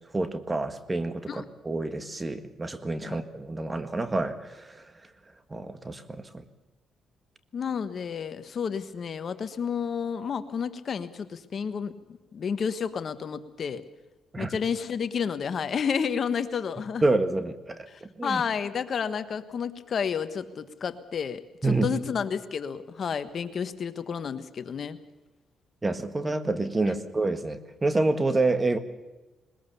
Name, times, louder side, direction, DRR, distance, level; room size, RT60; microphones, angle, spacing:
voice 1, 0.1-4.9 5.5-6.3 14.3-14.6 17.0-18.4 21.6-22.0 25.8-28.8, right 2 dB, 20° right, 10 dB, 1.7 m, -28 dB
voice 2, 7.5-11.9 12.3-13.8 14.4-17.0 17.9-25.0 26.8-26.9, left 6 dB, 50° left, 11 dB, 1.3 m, -31 dB
21.0 x 21.0 x 7.0 m, 1.1 s
cardioid pair, 90°, 0 cm